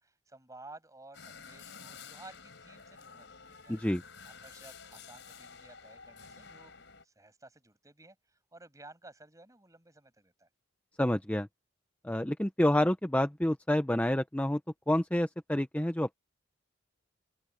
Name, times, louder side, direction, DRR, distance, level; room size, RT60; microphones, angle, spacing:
voice 1, 0.0-3.8 4.2-8.2 8.5-10.5, right 2 dB, 15° right, 7.7 m, -54 dB
sound 1, 1.1-7.0, left 5 dB, 65° left, 5.6 m, -51 dB
voice 2, 3.7-4.0 11.0-11.5 12.0-14.6 14.9-16.1, left 1 dB, 10° left, 0.6 m, -28 dB
open air
head